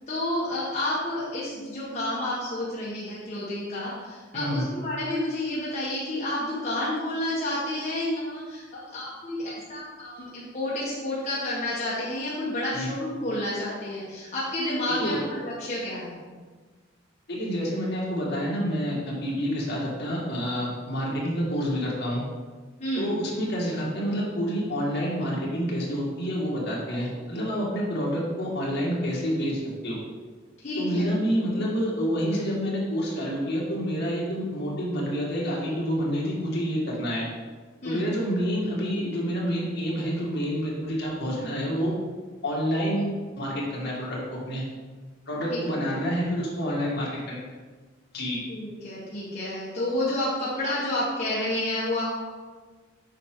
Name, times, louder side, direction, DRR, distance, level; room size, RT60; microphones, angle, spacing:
voice 1, 0.1-16.2 22.8-23.2 30.6-31.1 37.8-38.1 45.5-46.0 48.5-52.0, left 1 dB, 35° left, -8 dB, 1.7 m, -30 dB
voice 2, 4.3-4.6 12.7-12.9 14.9-15.2 17.3-22.2 23.0-30.0 30.8-37.2 37.8-41.9 42.4-43.1 43.4-44.6 45.3-47.4 48.1-48.4, equal, 55° left, -5 dB, 2.2 m, -28 dB
8.2 x 5.9 x 3.9 m, 1.4 s
head